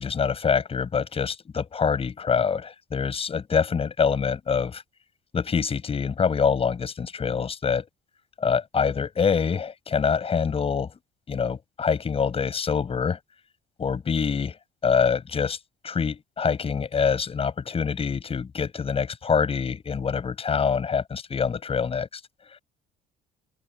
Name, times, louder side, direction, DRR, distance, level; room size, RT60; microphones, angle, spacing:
voice 1, 0.0-4.8 5.3-7.8 8.4-10.9 11.3-13.2 13.8-14.6 14.8-15.6 15.8-22.1, left 6 dB, 35° left, 7.8 m, -25 dB
open air
cardioid pair, 110°, 17 cm